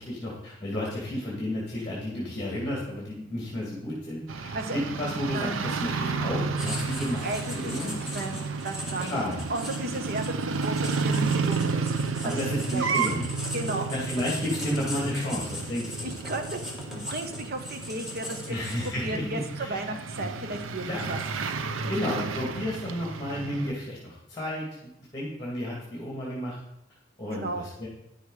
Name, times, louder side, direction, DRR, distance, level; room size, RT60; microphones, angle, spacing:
voice 1, 0.0-7.3 7.5-7.9 9.0-9.4 12.2-13.3 13.9-16.1 18.5-19.9 20.8-21.0 21.9-26.6 27.2-27.9, left 1 dB, 20° left, -4 dB, 2.1 m, -32 dB
sound 1, 4.3-23.7, right 4 dB, 90° right, 0.6 m, -32 dB
voice 2, 5.3-5.7 7.2-9.2 9.5-12.0 12.2-12.4 12.7-13.1 13.5-13.9 16.0-21.2 21.5-21.6 27.3-27.7, right 2 dB, 50° right, 5 dB, 1.1 m, -34 dB
Writing, 6.6-19.2, left 1 dB, ahead, 1.7 m, -40 dB
9.9 x 6.6 x 4.8 m, 0.85 s
head